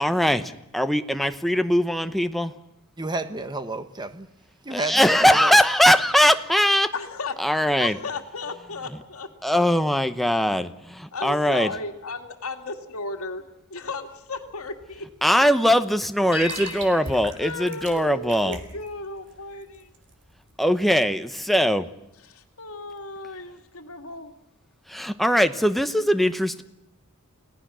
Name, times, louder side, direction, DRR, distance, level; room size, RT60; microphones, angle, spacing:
voice 1, 0.0-2.5 4.7-6.9 7.4-8.0 9.4-11.7 15.2-18.6 20.6-21.9 24.9-26.6, equal, ahead, 0.9 m, -21 dB
voice 2, 3.0-4.3 4.6-5.6, right 2 dB, 20° right, 1.2 m, -31 dB
voice 3, 6.9-9.6 11.1-13.4 13.7-15.1 16.4-16.6 17.4-19.9 22.2-24.3, left 3 dB, 75° left, 2.3 m, -35 dB
sound 1, 13.9-20.6, right 3 dB, 55° right, 3.7 m, -42 dB
sound 2, 16.3-18.5, left 2 dB, 25° left, 1.0 m, -39 dB
29.5 x 17.5 x 6.3 m
head